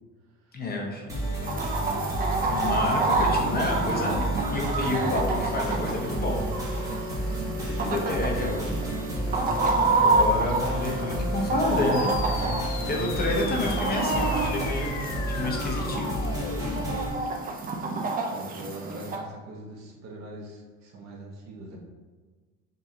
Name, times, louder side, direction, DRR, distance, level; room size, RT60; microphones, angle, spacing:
voice 1, 0.5-1.1 2.4-4.2 4.5-6.4 7.6-8.9 9.8-12.1 12.9-16.1, left 2 dB, 30° left, 0 dB, 0.7 m, -29 dB
sound 1, 1.1-17.1, right 1 dB, 10° right, 1.4 m, -31 dB
Chicken rooster, 1.4-19.2, right 3 dB, 30° right, 0.5 m, -29 dB
sound 2, 11.9-16.9, left 7 dB, 65° left, 0.5 m, -39 dB
voice 2, 18.3-21.8, right 1 dB, 55° right, -2 dB, 1.2 m, -41 dB
5.3 x 2.7 x 2.8 m, 1.4 s
cardioid pair, 135°, 31 cm